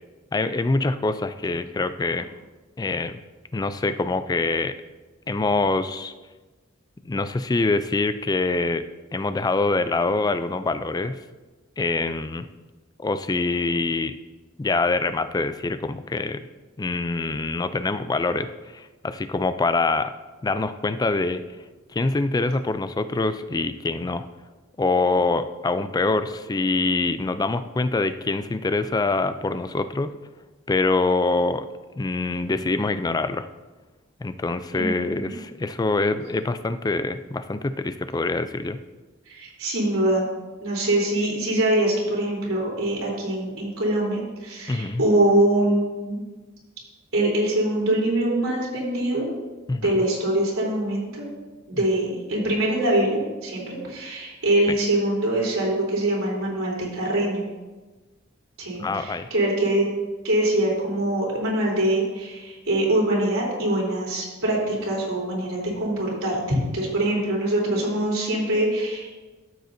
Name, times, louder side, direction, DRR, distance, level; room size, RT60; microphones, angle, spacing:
voice 1, 0.3-2.3 2.8-3.2 3.5-4.7 5.3-6.1 7.1-8.8 9.1-11.2 11.8-12.5 13.0-14.1 14.6-16.4 16.8-20.1 20.4-21.4 21.9-24.2 24.8-30.1 30.7-31.7 32.0-33.5 34.2-38.8 44.7-45.0 49.7-49.9 58.8-59.3, left 3 dB, 20° left, 11 dB, 0.3 m, -25 dB
voice 2, 34.7-35.3 39.3-40.2 40.6-46.2 47.1-49.3 49.8-51.2 51.7-57.4 58.6-59.9 60.2-69.1, right 1 dB, 85° right, -4 dB, 3.4 m, -23 dB
13.5 x 7.7 x 2.7 m, 1.2 s
head